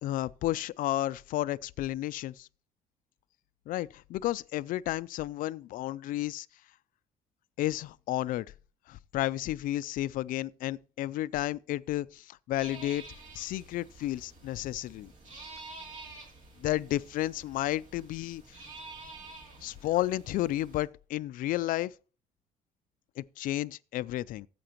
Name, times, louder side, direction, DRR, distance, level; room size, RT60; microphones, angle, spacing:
voice 1, 0.0-2.5 3.7-6.5 7.6-8.5 8.9-13.0 13.3-15.1 16.6-18.6 19.6-21.9 23.2-24.5, left 15 dB, 65° left, 0.4 m, -32 dB
sound 1, 12.6-20.9, right 2 dB, 55° right, 3.0 m, -49 dB
14.0 x 7.7 x 3.0 m
cardioid pair, 115°, 15 cm